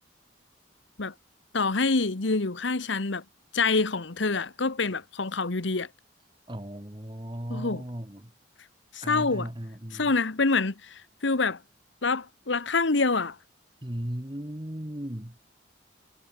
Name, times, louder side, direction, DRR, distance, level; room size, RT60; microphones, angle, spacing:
voice 1, 1.5-3.2 3.5-5.9 7.5-7.8 8.9-9.5 9.9-11.6 12.0-13.3, left 3 dB, 80° left, 1.3 m, -26 dB
voice 2, 6.5-8.3 9.0-10.1 13.8-15.4, equal, 25° right, 1.9 m, -36 dB
head